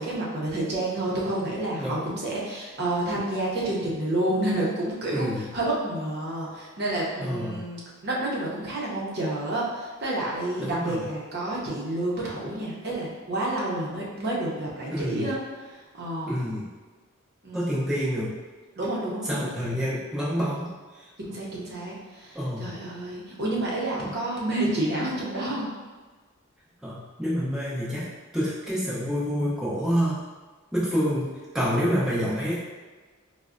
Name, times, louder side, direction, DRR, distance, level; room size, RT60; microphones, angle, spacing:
voice 1, 0.0-15.4 15.7-16.4 17.4-17.7 18.8-19.5 21.2-25.7, right 1 dB, 50° right, -5 dB, 0.7 m, -29 dB
voice 2, 1.8-2.1 5.1-5.5 7.2-7.7 10.6-11.1 14.9-15.3 16.3-16.7 17.5-18.4 19.2-20.7 22.3-22.7 24.0-24.1 26.8-28.1 28.3-30.2 30.7-31.3 31.5-32.6, equal, ahead, -9 dB, 0.6 m, -27 dB
4.4 x 2.1 x 2.5 m, 1.3 s
head